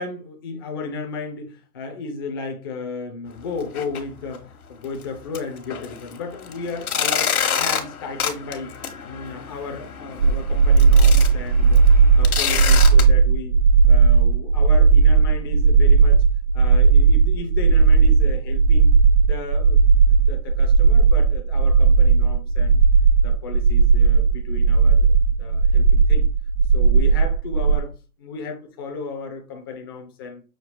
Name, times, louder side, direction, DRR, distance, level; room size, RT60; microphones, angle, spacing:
voice 1, 0.0-8.7 9.0-13.5 13.9-16.2 16.5-18.9 19.2-19.8 20.1-22.8 23.2-26.3 26.7-27.9 28.2-30.4, left 4 dB, 15° left, 0.5 m, -34 dB
sound 1, 3.6-4.0 4.3-4.4 4.9-5.0 5.3-13.0, left 7 dB, 70° left, 1.2 m, -28 dB
sound 2, 10.2-27.8, right 5 dB, 40° right, 0.6 m, -15 dB
6.3 x 2.3 x 3.3 m
hypercardioid pair, 140°, 45 cm